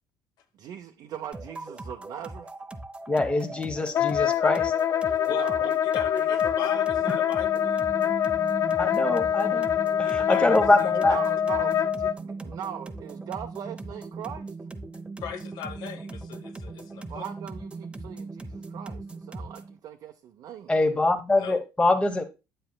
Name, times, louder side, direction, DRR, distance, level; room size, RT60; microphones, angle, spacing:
voice 1, 0.6-2.5 5.3-5.8 6.2-6.3 11.1-14.5 17.1-20.7, right 9 dB, 60° right, 0.6 m, -40 dB
sound 1, 1.3-19.8, right 3 dB, 15° right, 0.6 m, -39 dB
voice 2, 3.1-4.7 8.8-9.7 10.0-11.2 20.7-22.2, left 2 dB, 15° left, 0.9 m, -24 dB
Wind instrument woodwind instrument, 3.9-12.1, left 10 dB, 40° left, 0.4 m, -25 dB
voice 3, 5.3-7.8 10.0-10.6 15.2-17.2 21.4-21.6, left 7 dB, 70° left, 0.9 m, -38 dB
8.5 x 7.9 x 2.2 m
supercardioid pair, 80°, 8 cm